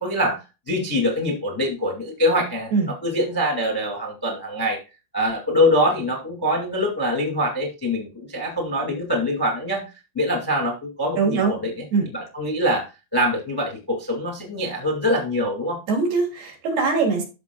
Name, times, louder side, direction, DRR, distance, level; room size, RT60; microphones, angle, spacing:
voice 1, 0.0-4.8 5.1-9.8 10.1-15.8, left 1 dB, 10° left, 0 dB, 1.0 m, -24 dB
voice 2, 11.2-11.5 11.9-12.1 15.9-17.2, right 4 dB, 75° right, 0 dB, 4.8 m, -21 dB
13.0 x 6.1 x 2.3 m, 0.28 s
omnidirectional pair, 4.6 m